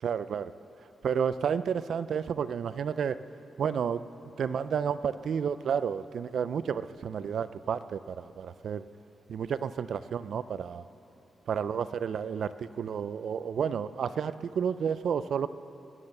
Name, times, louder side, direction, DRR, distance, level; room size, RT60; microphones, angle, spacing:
voice 1, 0.0-0.5 1.0-3.2 3.6-4.0 4.4-8.8 9.3-10.8 11.5-15.5, right 7 dB, 70° right, 14 dB, 0.5 m, -31 dB
20.5 x 9.7 x 6.6 m, 2.9 s
cardioid pair, 95°, 0 cm